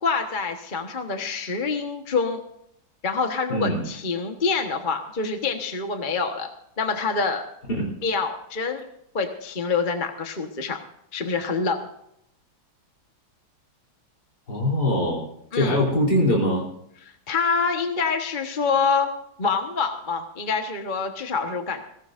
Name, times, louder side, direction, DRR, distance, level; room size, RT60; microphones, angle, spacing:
voice 1, 0.0-2.4 3.0-6.5 6.8-7.4 8.0-8.8 9.1-10.8 11.1-11.8 15.5-15.8 17.3-19.1 19.4-21.8, left 4 dB, 30° left, 4 dB, 1.2 m, -26 dB
voice 2, 3.5-3.9 7.7-7.9 14.5-16.7, left 1 dB, 50° left, -1 dB, 4.4 m, -23 dB
21.5 x 17.5 x 2.6 m, 0.75 s
omnidirectional pair, 2.2 m